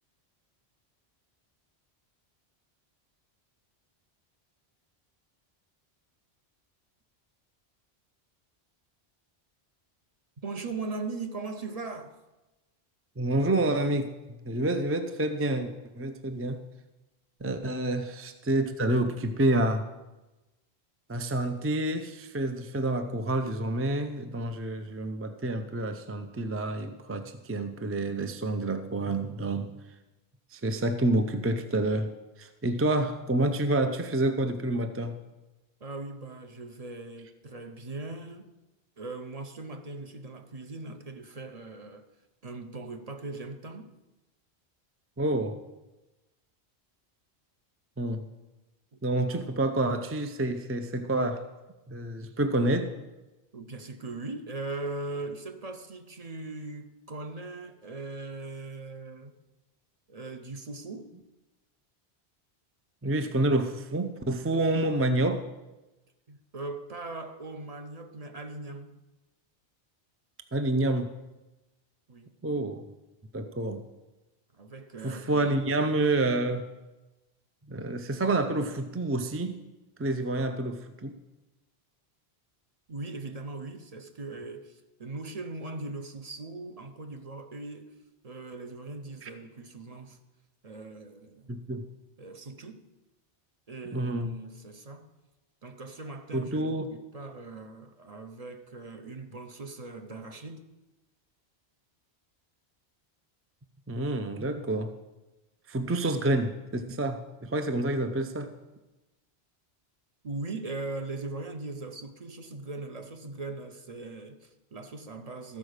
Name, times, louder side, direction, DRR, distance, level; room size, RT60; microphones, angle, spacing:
voice 1, 10.4-12.1 17.4-17.6 35.8-38.5 39.0-42.1 42.4-43.9 48.9-49.0 53.5-59.3 60.1-61.1 66.3-68.9 72.1-72.3 74.5-75.6 82.9-87.9 88.2-90.2 90.6-91.5 92.2-92.8 93.7-95.1 95.6-100.6 110.2-115.6, right 3 dB, 40° right, 0.8 m, -40 dB
voice 2, 13.2-14.1 14.5-16.6 17.4-19.9 21.1-29.7 30.5-32.1 32.4-35.2 45.2-45.6 48.0-48.2 49.0-51.5 51.9-52.9 63.0-65.5 70.5-71.1 72.4-72.8 73.3-73.8 75.0-76.7 77.7-79.6 80.0-81.1 89.2-89.3 91.5-91.8 93.9-94.3 96.3-96.9 103.9-104.9 105.7-108.5, right 1 dB, 20° right, 0.4 m, -28 dB
14.0 x 4.9 x 6.5 m
omnidirectional pair, 1.1 m